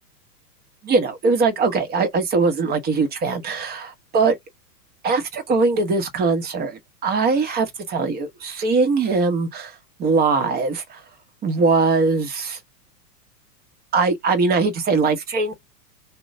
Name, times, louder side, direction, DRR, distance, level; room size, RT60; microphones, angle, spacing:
voice 1, 0.8-4.4 5.0-9.7 10.0-11.0 11.4-12.6 13.9-15.5, right 4 dB, 20° right, 0.8 m, -21 dB
3.0 x 2.1 x 3.7 m
hypercardioid pair, 110°, 47 cm